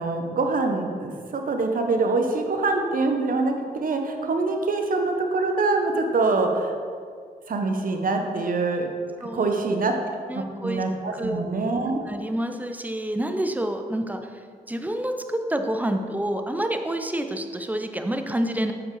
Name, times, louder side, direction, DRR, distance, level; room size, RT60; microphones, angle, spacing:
voice 1, 0.0-3.5 3.8-6.7 7.5-8.9 9.3-9.9 10.3-12.0, right 3 dB, 55° right, 4 dB, 1.0 m, -24 dB
voice 2, 9.2-9.6 10.3-10.8 11.1-18.7, right 1 dB, 10° right, 6 dB, 0.7 m, -28 dB
7.0 x 5.2 x 4.8 m, 2.1 s
cardioid pair, 65°, 17 cm